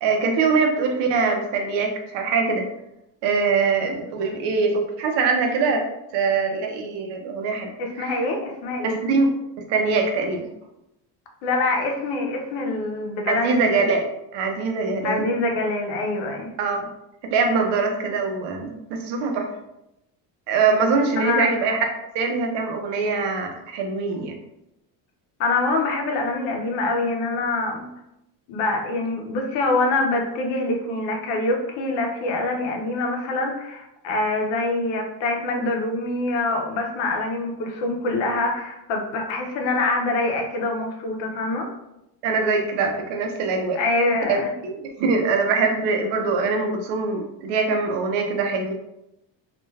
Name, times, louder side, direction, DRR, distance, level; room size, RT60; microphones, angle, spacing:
voice 1, 0.0-2.7 3.2-5.8 6.1-7.7 8.0-8.2 8.8-9.3 9.7-10.5 13.3-15.3 16.6-16.8 17.3-19.5 20.5-21.8 22.1-24.3 42.2-43.8 44.3-48.7, right 4 dB, 75° right, 3 dB, 0.7 m, -23 dB
voice 2, 7.8-9.0 11.4-13.9 15.0-16.5 21.2-21.5 25.4-27.9 28.5-41.7 43.7-44.5, left 2 dB, 85° left, 2 dB, 0.7 m, -25 dB
2.4 x 2.3 x 3.1 m, 0.87 s
cardioid pair, 145°, 42 cm